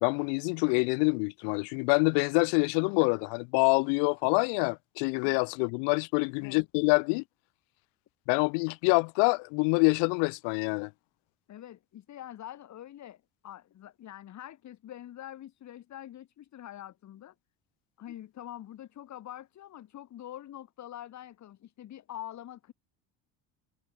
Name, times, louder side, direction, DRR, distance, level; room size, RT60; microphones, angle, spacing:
voice 1, 0.0-7.2 8.3-10.9, left 40 dB or more, 80° left, 1.5 m, -26 dB
voice 2, 11.5-17.3 18.0-22.7, left 12 dB, 45° left, 2.9 m, -45 dB
cardioid pair, 130°, 41 cm